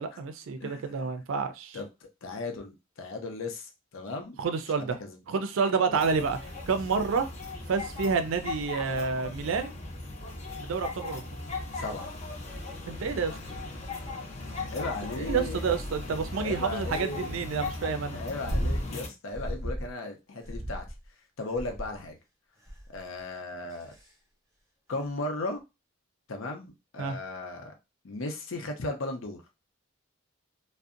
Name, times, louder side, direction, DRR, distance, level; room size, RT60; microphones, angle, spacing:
voice 1, 0.0-1.8 4.4-5.0 5.3-6.4 6.7-7.3 7.7-9.8 10.6-11.4 12.9-13.4 15.2-18.2 27.0-27.2, right 5 dB, 75° right, 0.4 m, -29 dB
voice 2, 0.6-1.0 1.7-1.9 2.2-4.4 4.8-5.2 5.9-6.0 11.7-12.1 14.7-15.6 16.3-17.3 18.1-20.8 21.4-22.2 22.9-23.9 24.9-25.6 26.3-27.7 28.0-29.4, left 2 dB, 75° left, 0.6 m, -36 dB
sound 1, 5.9-19.1, left 2 dB, 35° left, 0.5 m, -38 dB
sound 2, 18.4-18.9 19.3-19.9 20.4-21.1 21.6-22.0 22.7-23.0 23.7-24.1 25.0-25.1, equal, 15° right, 0.7 m, -33 dB
2.6 x 2.1 x 2.4 m
head